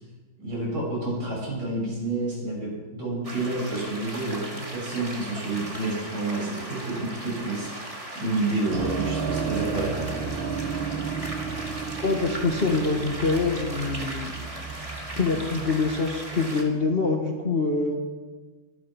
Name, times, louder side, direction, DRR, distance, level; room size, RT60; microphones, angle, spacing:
voice 1, 0.4-7.9 8.1-10.1, right 2 dB, 55° right, -3 dB, 7.2 m, -29 dB
sound 1, 3.2-16.6, right 1 dB, 15° right, 2.0 m, -38 dB
sound 2, 8.7-17.0, right 5 dB, 75° right, 1.9 m, -33 dB
voice 2, 12.0-14.3 15.2-18.0, left 3 dB, 30° left, 1 dB, 1.5 m, -25 dB
23.5 x 12.0 x 4.8 m, 1.3 s
omnidirectional pair, 2.2 m